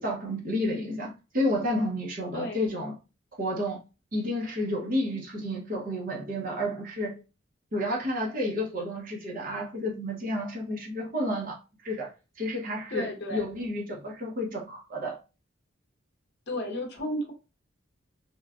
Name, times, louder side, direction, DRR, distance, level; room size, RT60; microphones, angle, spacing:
voice 1, 0.0-3.0 3.4-3.8 4.1-7.2 7.7-11.6 11.8-12.1 12.4-15.2, left 1 dB, 45° right, 0.8 m, -31 dB
voice 2, 12.9-13.4 16.5-17.3, left 1 dB, 55° left, 0.7 m, -32 dB
3.0 x 2.2 x 2.3 m
head